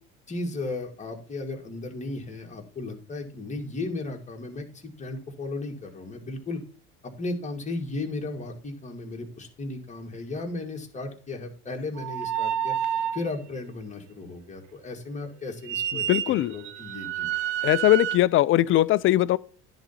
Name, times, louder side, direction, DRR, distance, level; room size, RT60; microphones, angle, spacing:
voice 1, 0.3-6.6 7.0-12.7 13.1-17.3, left 2 dB, 25° left, 2.1 m, -35 dB
sound 1, 12.0-13.3 15.6-18.2, right 10 dB, 70° right, 0.7 m, -29 dB
voice 2, 16.1-16.5 17.6-19.4, left 15 dB, 45° left, 0.4 m, -20 dB
10.5 x 4.0 x 5.7 m
supercardioid pair, 95°, 30 cm